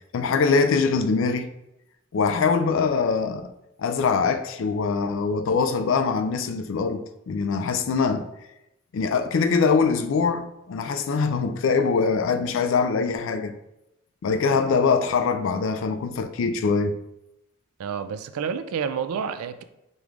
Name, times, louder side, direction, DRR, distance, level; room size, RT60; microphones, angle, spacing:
voice 1, 0.1-1.5 2.1-3.5 3.8-8.3 8.9-13.5 14.2-16.9, left 5 dB, 65° left, 0.3 m, -23 dB
voice 2, 17.8-19.6, right 7 dB, 85° right, 0.3 m, -29 dB
5.1 x 2.4 x 3.2 m
head